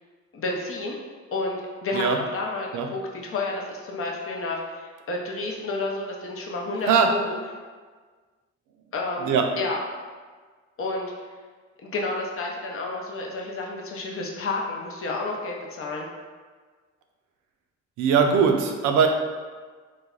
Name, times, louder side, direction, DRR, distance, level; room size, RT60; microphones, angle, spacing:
voice 1, 0.3-1.0 1.3-7.4 8.9-9.8 10.8-11.1 11.8-16.1, left 2 dB, 45° left, -1 dB, 0.7 m, -30 dB
voice 2, 18.0-19.1, right 6 dB, 80° right, 4 dB, 0.5 m, -20 dB
3.1 x 2.2 x 3.7 m, 1.5 s
cardioid pair, 90°, 30 cm